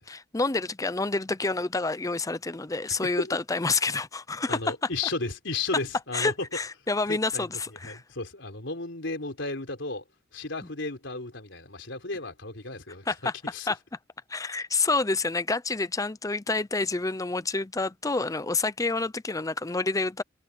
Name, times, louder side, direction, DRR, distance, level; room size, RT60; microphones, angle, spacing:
voice 1, 0.1-4.6 6.1-8.0 13.1-13.3 13.7-13.8 14.3-20.2, left 3 dB, 20° left, 0.6 m, -28 dB
voice 2, 2.9-3.4 4.5-6.5 7.1-7.5 7.8-10.0 10.3-13.7, left 3 dB, 70° left, 4.3 m, -34 dB
head